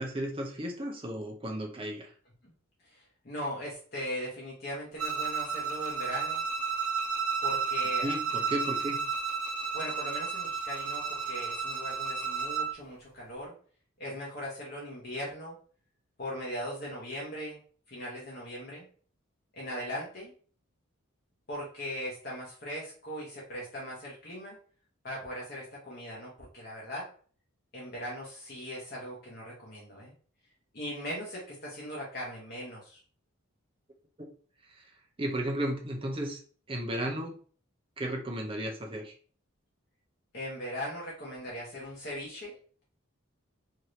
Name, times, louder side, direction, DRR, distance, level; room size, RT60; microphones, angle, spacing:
voice 1, 0.0-2.1 8.0-9.0 34.7-34.8 35.2-36.4 36.7-37.4 38.0-39.1, right 1 dB, 25° right, 1 dB, 0.6 m, -34 dB
voice 2, 2.8-6.4 7.4-8.1 9.7-13.5 14.0-15.6 16.2-17.6 17.9-18.8 19.5-20.3 21.5-24.6 25.0-27.1 27.7-30.1 30.7-33.0 40.3-42.6, equal, 45° left, -5 dB, 0.9 m, -39 dB
Bowed string instrument, 5.0-12.8, right 5 dB, 90° right, 0.6 m, -32 dB
2.8 x 2.6 x 3.1 m, 0.43 s
head